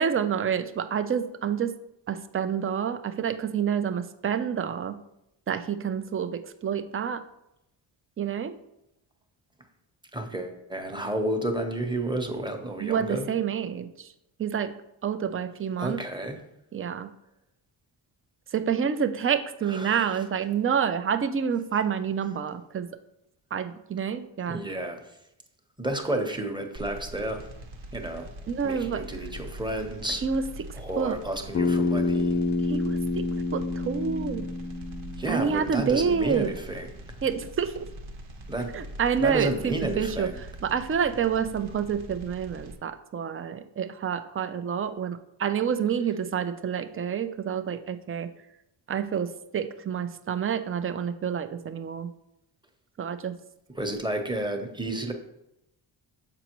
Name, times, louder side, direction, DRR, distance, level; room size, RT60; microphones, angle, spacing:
voice 1, 0.0-1.8 2.1-5.0 5.5-7.2 8.2-8.5 12.8-14.1 14.4-14.8 15.0-16.0 16.7-17.1 18.5-22.9 23.5-24.6 28.5-29.0 30.2-30.5 31.0-31.2 32.6-33.3 33.5-34.5 35.3-36.5 37.2-37.9 38.7-40.3 40.6-48.3 48.9-52.1 53.0-53.3, right 7 dB, 30° right, 10 dB, 0.5 m, -28 dB
voice 2, 10.1-13.3 15.8-16.4 19.7-20.1 24.5-25.0 25.8-27.5 27.9-28.3 28.6-30.2 30.8-32.4 35.2-36.9 38.5-38.7 39.2-40.4 53.7-55.1, right 1 dB, 10° right, 4 dB, 0.9 m, -31 dB
sound 1, 26.8-42.8, right 1 dB, 70° right, 1.2 m, -42 dB
Bass guitar, 31.5-35.8, left 3 dB, 30° left, 0.4 m, -28 dB
6.8 x 5.0 x 3.0 m, 0.85 s
cardioid pair, 80°, 48 cm